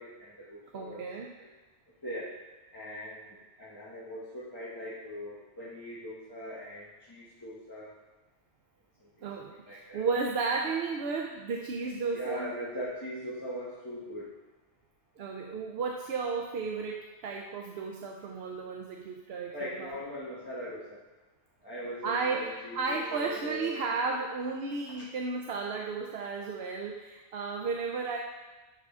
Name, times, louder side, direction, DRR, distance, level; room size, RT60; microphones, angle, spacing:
voice 1, 0.0-1.0 1.4-1.5 2.0-7.9 9.0-9.1 9.3-10.1 12.1-14.3 19.5-21.0 21.6-23.8 24.1-24.2, equal, 20° left, -10 dB, 1.3 m, -41 dB
voice 2, 0.7-1.3 9.2-12.5 15.2-19.9 22.0-28.2, right 4 dB, 70° right, 0 dB, 0.8 m, -33 dB
10.5 x 3.7 x 3.6 m, 1.2 s
omnidirectional pair, 1.1 m